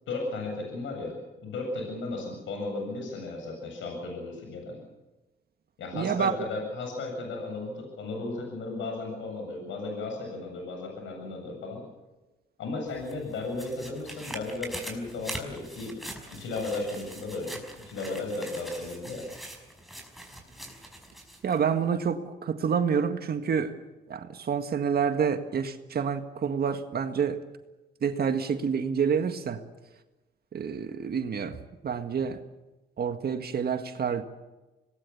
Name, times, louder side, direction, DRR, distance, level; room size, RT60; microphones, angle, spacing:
voice 1, 0.1-1.1 1.4-4.8 5.8-11.8 12.6-15.9 16.3-17.6 17.9-19.2, left 3 dB, 75° left, 7.9 m, -35 dB
voice 2, 5.9-6.3 21.4-23.7 24.1-27.4 28.0-29.6 30.5-31.6 31.8-32.4 33.0-34.2, right 7 dB, 50° right, 1.8 m, -28 dB
sound 1, 12.9-21.6 22.0-22.1, right 1 dB, ahead, 5.6 m, -43 dB
26.0 x 20.0 x 7.2 m
cardioid pair, 90°, 20 cm